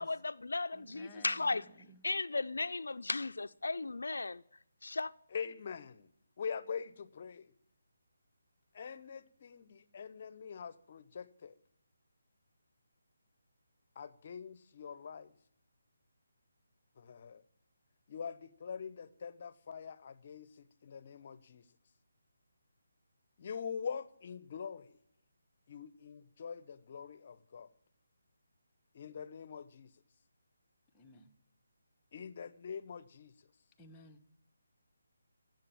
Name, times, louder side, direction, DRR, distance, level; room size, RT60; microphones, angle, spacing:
voice 1, 0.0-1.6 2.0-4.4 4.8-5.1, left 3 dB, 80° left, 0.5 m, -35 dB
voice 2, 0.7-2.0 30.9-31.3 33.8-34.2, equal, 15° left, 1.2 m, -56 dB
voice 3, 5.3-6.1 6.4-7.5 8.7-11.5 14.0-15.3 17.0-17.4 18.1-21.6 23.4-25.0 25.7-27.7 28.9-29.9 32.1-33.3, left 6 dB, 45° left, 0.9 m, -44 dB
16.5 x 7.8 x 8.7 m
figure-of-eight pair, 160°, 0 cm